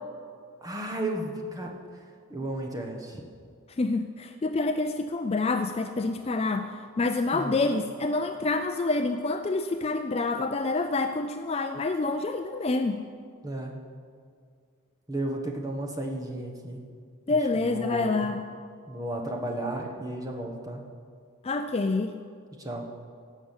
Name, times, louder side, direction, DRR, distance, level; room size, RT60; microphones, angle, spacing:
voice 1, 0.6-1.7 2.3-3.2 7.3-7.5 13.4-13.7 15.1-16.8 17.3-18.3 18.9-20.8 22.6-22.9, right 1 dB, 15° right, 1 dB, 1.2 m, -33 dB
voice 2, 3.8-6.7 7.0-13.0 17.3-18.4 21.4-22.1, left 3 dB, 25° left, 7 dB, 0.3 m, -27 dB
17.0 x 6.2 x 7.4 m, 2.2 s
head